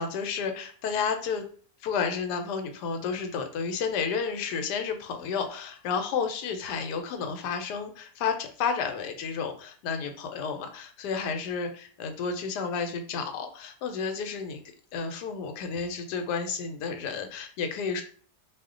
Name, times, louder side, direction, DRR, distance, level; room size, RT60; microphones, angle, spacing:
voice 1, 0.0-1.4 1.8-14.6 14.9-18.0, left 5 dB, 85° left, 6 dB, 1.2 m, -31 dB
2.7 x 2.1 x 3.6 m, 0.43 s
omnidirectional pair, 1.7 m